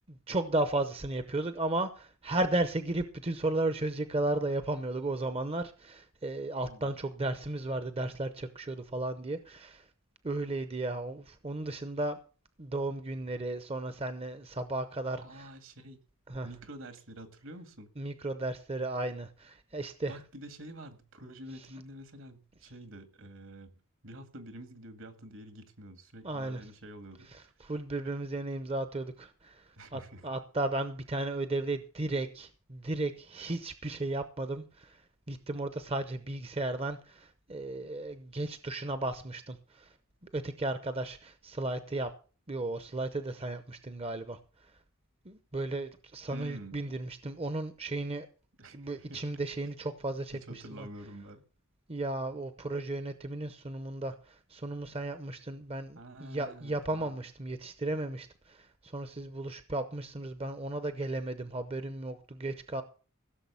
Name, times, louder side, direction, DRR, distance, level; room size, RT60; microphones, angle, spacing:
voice 1, 0.1-9.8 10.2-12.2 12.6-15.5 16.3-16.5 18.0-20.2 26.2-26.6 27.3-35.0 35.3-39.9 40.2-42.1 42.5-44.4 45.3-48.3 48.7-50.9 51.9-62.8, right 2 dB, 25° right, 0.8 m, -34 dB
voice 2, 15.2-16.0 16.4-17.9 20.1-23.7 24.0-27.5 29.8-30.3 46.3-46.8 48.6-49.2 50.3-51.4 56.0-57.2, right 1 dB, 65° right, 2.0 m, -48 dB
16.0 x 6.8 x 6.9 m
head